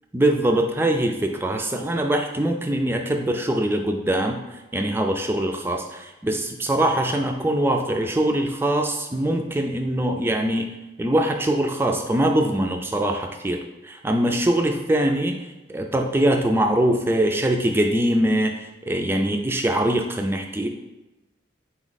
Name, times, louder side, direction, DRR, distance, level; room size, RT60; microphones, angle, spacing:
voice 1, 0.1-10.7 11.0-20.7, right 1 dB, 10° right, 3 dB, 0.3 m, -23 dB
4.0 x 3.0 x 4.0 m, 1.0 s
head